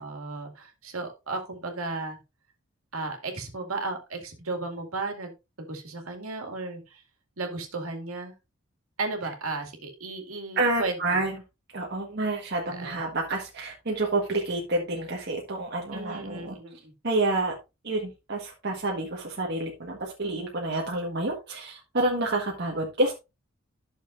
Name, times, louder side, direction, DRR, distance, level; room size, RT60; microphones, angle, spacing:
voice 1, 0.0-2.2 2.9-5.3 5.6-7.0 7.4-8.3 9.0-11.2 12.7-13.1 15.9-16.9, right 3 dB, 90° right, 4 dB, 2.2 m, -34 dB
voice 2, 10.5-11.4 11.7-16.5 17.0-17.5 17.8-23.1, right 2 dB, 55° right, -1 dB, 1.5 m, -28 dB
12.0 x 6.5 x 2.5 m, 0.25 s
head